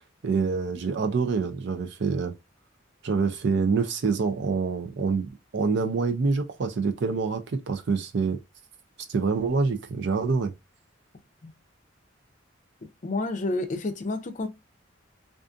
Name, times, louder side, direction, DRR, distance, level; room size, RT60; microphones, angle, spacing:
voice 1, 0.2-2.3 3.0-8.4 9.1-10.5, right 4 dB, 65° right, 0.5 m, -26 dB
voice 2, 13.0-14.5, left 2 dB, 40° left, 0.5 m, -29 dB
2.5 x 2.4 x 2.4 m
head